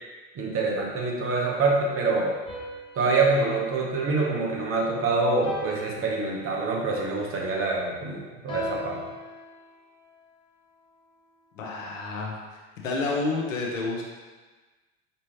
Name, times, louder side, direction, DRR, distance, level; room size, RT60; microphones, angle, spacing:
voice 1, 0.4-2.3 3.0-9.0, right 3 dB, 35° right, -2 dB, 1.1 m, -25 dB
sound 1, 2.4-4.9 5.4-6.9 8.5-10.2, left 2 dB, 10° left, 1.4 m, -40 dB
voice 2, 11.5-12.6 12.8-14.0, left 3 dB, 80° left, -1 dB, 1.0 m, -29 dB
5.2 x 3.2 x 3.1 m, 1.3 s
hypercardioid pair, 75°, 38 cm